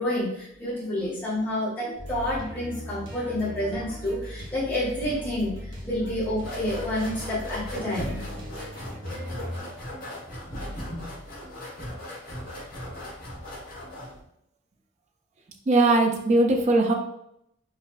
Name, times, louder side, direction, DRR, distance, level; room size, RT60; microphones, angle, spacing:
voice 1, 0.0-8.1, left 1 dB, 10° left, -10 dB, 1.5 m, -29 dB
sound 1, 2.0-9.6, equal, 70° right, 0.9 m, -39 dB
sound 2, 6.4-14.2, left 1 dB, 45° left, 1.2 m, -37 dB
voice 2, 15.7-16.9, right 2 dB, 35° right, 2 dB, 0.3 m, -20 dB
4.0 x 2.5 x 2.3 m, 0.78 s
head